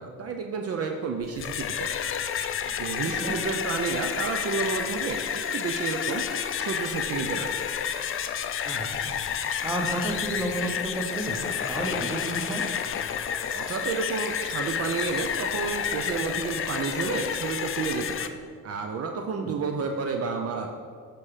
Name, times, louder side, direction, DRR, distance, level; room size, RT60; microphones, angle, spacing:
voice 1, 0.0-2.0 2.6-6.2 6.6-7.5 13.5-18.4 18.6-20.7, right 4 dB, 50° right, 4 dB, 0.6 m, -31 dB
sound 1, 1.2-18.3, left 8 dB, 45° left, 0.4 m, -30 dB
voice 2, 8.6-9.1 9.6-12.6 19.3-19.6, right 1 dB, 10° right, 1 dB, 1.1 m, -31 dB
7.3 x 5.9 x 3.3 m, 2.2 s
cardioid pair, 90°, 30 cm